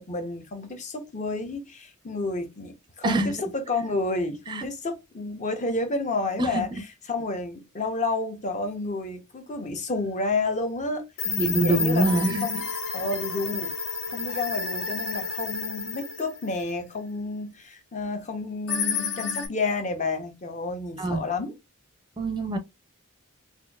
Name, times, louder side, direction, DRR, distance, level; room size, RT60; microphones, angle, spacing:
voice 1, 0.0-6.8 7.1-11.0 11.4-12.7 12.9-13.7 14.1-21.6, left 3 dB, 35° left, 0.8 m, -30 dB
voice 2, 3.0-3.3 4.5-4.7 6.4-6.6 11.3-12.5 21.0-21.2 22.2-22.6, right 2 dB, 20° right, 0.5 m, -24 dB
sound 1, 11.2-16.7 18.7-19.5, left 5 dB, 65° left, 1.3 m, -30 dB
4.3 x 2.5 x 2.3 m
head